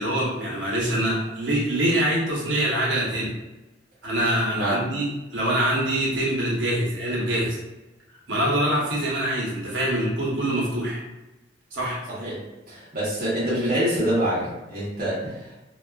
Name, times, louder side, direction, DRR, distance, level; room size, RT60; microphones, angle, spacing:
voice 1, 0.0-3.3 4.0-7.6 8.3-11.0 11.7-12.0, right 1 dB, 75° right, -5 dB, 0.9 m, -24 dB
voice 2, 12.1-15.5, right 1 dB, 50° right, -8 dB, 0.8 m, -26 dB
2.3 x 2.3 x 2.3 m, 1.0 s
head